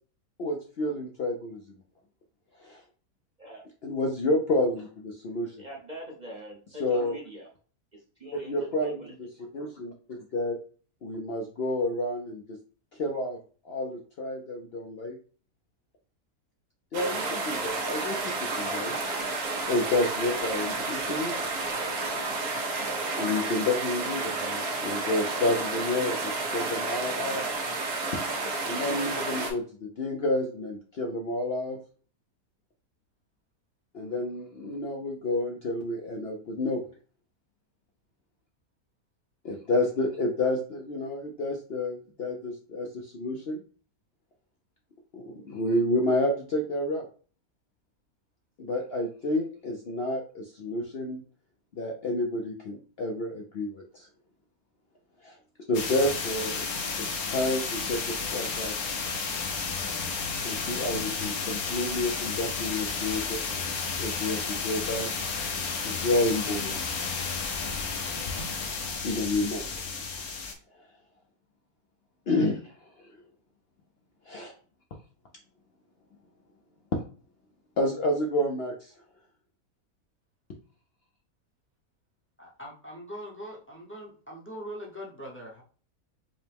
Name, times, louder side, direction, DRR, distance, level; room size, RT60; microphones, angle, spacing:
voice 1, 0.4-1.6 2.6-2.8 3.8-5.5 6.8-7.2 8.5-9.0 9.5-10.6 11.0-12.6 13.0-13.4 13.6-15.2 16.9-19.0 19.7-21.4 23.2-27.4 28.6-31.8 33.9-36.8 39.4-43.6 45.1-47.1 48.6-51.2 51.8-54.1 55.2-55.3 55.7-56.6 57.0-58.8 60.4-63.6 64.0-65.1 65.8-66.7 69.0-69.7 72.3-72.7 74.3-74.5 77.8-78.9, left 1 dB, 60° left, 1 dB, 0.7 m, -29 dB
voice 2, 5.6-7.5 7.9-9.1, equal, 40° right, -2 dB, 0.7 m, -43 dB
sound 1, 16.9-29.5, right 3 dB, 75° right, 1.4 m, -31 dB
sound 2, 55.7-70.5, left 5 dB, 75° left, 1.3 m, -32 dB
voice 3, 82.4-85.6, equal, 10° left, -4 dB, 0.6 m, -41 dB
5.2 x 2.1 x 3.4 m, 0.41 s
omnidirectional pair, 1.6 m